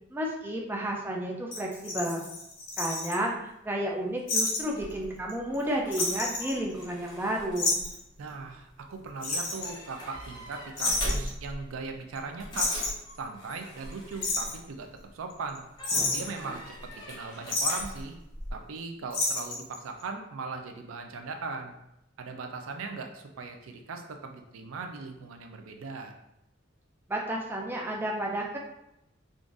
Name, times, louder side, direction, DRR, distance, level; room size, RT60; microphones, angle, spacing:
voice 1, 0.1-2.2 2.8-7.8 27.1-28.6, right 1 dB, 10° right, -1 dB, 0.3 m, -31 dB
sound 1, 1.5-3.2 4.3-4.6 4.9-5.0 5.3-5.6 5.9-7.1 7.5-8.0 9.2-9.8 10.8-11.3 12.2-12.3 12.5-13.1 13.9-14.6 15.3-15.6 15.8-16.4 17.5-17.9 19.1-19.7 20.0-20.1, left 2 dB, 60° left, 1.1 m, -30 dB
sound 2, 4.6-15.1 15.7-18.5, equal, 20° left, 0.7 m, -41 dB
voice 2, 8.2-12.8 13.2-15.7 16.1-18.2 18.5-21.8 22.2-26.2, right 4 dB, 90° right, 5 dB, 0.4 m, -39 dB
3.8 x 2.5 x 2.4 m, 0.83 s
head